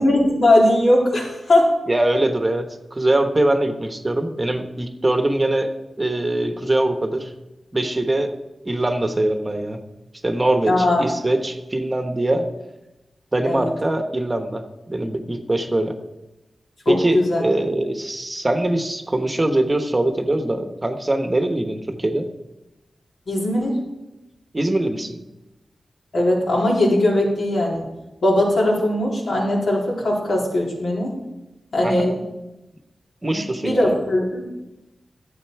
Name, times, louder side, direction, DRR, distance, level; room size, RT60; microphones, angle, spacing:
voice 1, 0.0-1.7 10.7-11.0 13.5-13.7 16.9-17.4 23.3-23.8 26.1-27.9 28.2-31.1 31.7-32.2 33.2-34.5, left 1 dB, 75° left, -4 dB, 3.8 m, -19 dB
voice 2, 1.9-5.7 6.0-7.3 7.7-8.3 8.6-9.8 10.2-12.5 13.3-15.9 16.9-22.3 24.5-25.2 31.8-32.2 33.2-33.9, right 1 dB, 25° right, 6 dB, 1.0 m, -22 dB
12.0 x 8.1 x 4.6 m, 0.99 s
wide cardioid pair, 95°, 0 cm